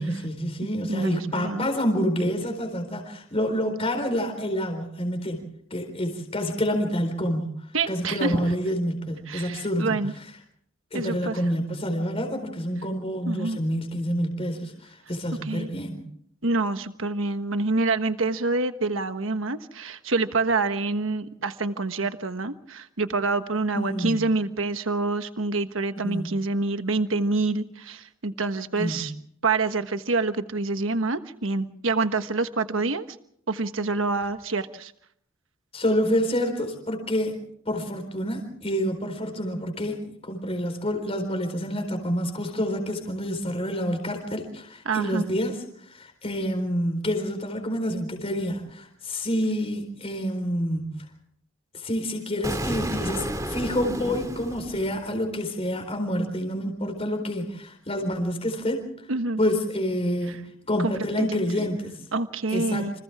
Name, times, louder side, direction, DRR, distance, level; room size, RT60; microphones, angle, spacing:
voice 1, 0.0-5.4 5.7-7.6 7.9-10.0 10.9-14.7 15.1-16.0 23.7-24.2 26.0-26.3 28.8-29.0 35.7-37.4 37.7-40.0 40.2-45.6 45.9-50.9 51.7-58.9 59.4-61.9 62.5-62.9, equal, 30° left, 4 dB, 4.2 m, -28 dB
voice 2, 0.9-1.7 7.7-8.5 9.3-10.1 10.9-11.4 13.2-13.6 15.4-15.7 16.4-29.1 29.4-33.0 33.5-34.9 44.8-45.2 59.1-59.4 60.3-60.4 60.8-61.4 62.1-62.9, right 3 dB, 70° right, 9 dB, 1.3 m, -27 dB
Explosion, 52.4-55.3, right 1 dB, 15° right, 2.3 m, -32 dB
29.5 x 26.5 x 3.6 m, 0.66 s
head